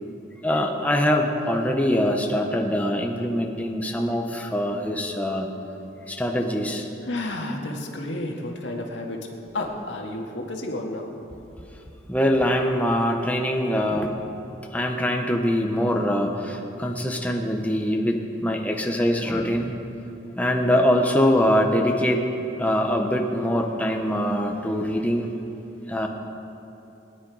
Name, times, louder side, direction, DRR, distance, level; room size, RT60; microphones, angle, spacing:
voice 1, 0.4-5.5 6.1-6.9 12.1-14.1 14.7-19.7 20.4-22.2 22.6-25.3 25.9-26.1, equal, 10° left, 2 dB, 1.0 m, -23 dB
voice 2, 7.0-9.2 9.5-11.2, left 1 dB, 80° left, 1 dB, 1.9 m, -31 dB
21.5 x 10.5 x 4.9 m, 3.0 s
head